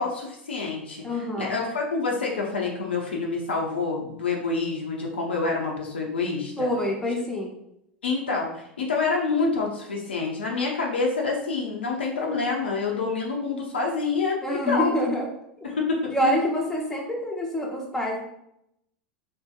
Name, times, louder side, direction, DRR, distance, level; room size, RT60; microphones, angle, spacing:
voice 1, 0.0-6.7 8.0-14.4 14.7-14.9 15.6-16.4, left 4 dB, 75° left, 0 dB, 0.5 m, -27 dB
voice 2, 1.0-1.6 6.6-7.5 14.4-15.3 16.1-18.2, equal, 10° left, -1 dB, 0.8 m, -26 dB
3.6 x 2.6 x 2.4 m, 0.79 s
figure-of-eight pair, 85°, 6 cm